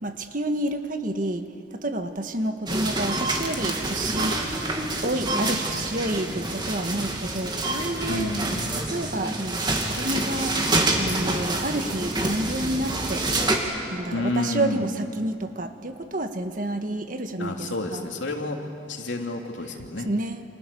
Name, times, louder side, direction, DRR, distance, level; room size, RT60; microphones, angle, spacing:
voice 1, 0.0-4.6 5.0-8.3 8.8-10.6 11.0-13.2 13.9-18.0 20.0-20.4, right 1 dB, 45° right, 7 dB, 1.5 m, -29 dB
sound 1, 2.7-13.6, right 2 dB, 20° right, 2.5 m, -27 dB
voice 2, 8.1-8.6 14.1-14.9 17.4-18.6 18.9-20.1, left 2 dB, 70° left, 2 dB, 3.0 m, -29 dB
30.0 x 28.0 x 7.0 m, 2.6 s
head